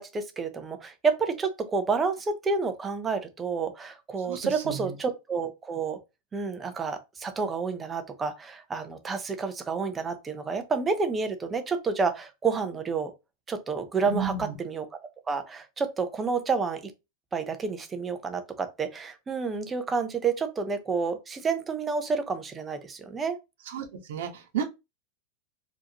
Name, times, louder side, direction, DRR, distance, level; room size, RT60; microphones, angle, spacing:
voice 1, 0.0-6.0 6.3-13.1 13.5-14.9 15.3-16.9 17.3-23.4, right 4 dB, 15° right, 0.7 m, -29 dB
voice 2, 4.3-4.9 14.0-14.5 23.7-24.6, right 6 dB, 75° right, 1.2 m, -33 dB
4.7 x 2.9 x 2.9 m
supercardioid pair, 165°, 0 cm